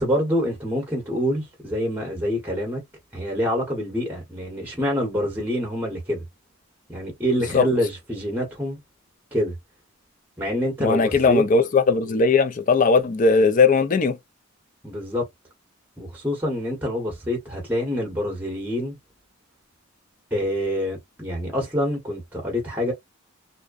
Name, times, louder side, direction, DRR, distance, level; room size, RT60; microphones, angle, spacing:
voice 1, 0.0-2.8 3.1-6.2 6.9-8.8 9.3-9.5 10.4-11.4 14.8-15.3 16.0-18.9 20.3-22.9, equal, 10° right, 0.9 m, -26 dB
voice 2, 10.8-14.2, left 4 dB, 35° left, 0.4 m, -18 dB
2.5 x 2.1 x 2.3 m
head